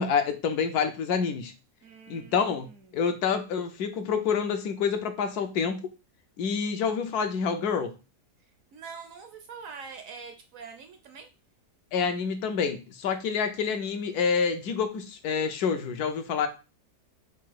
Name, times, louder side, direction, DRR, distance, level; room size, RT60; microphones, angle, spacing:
voice 1, 0.0-1.5 2.1-2.7 2.9-5.9 6.4-8.0 11.9-16.5, left 6 dB, 75° left, 7 dB, 1.1 m, -27 dB
voice 2, 1.8-3.0 8.7-11.3, right 5 dB, 65° right, 7 dB, 0.9 m, -44 dB
4.8 x 2.4 x 4.5 m, 0.30 s
omnidirectional pair, 1.7 m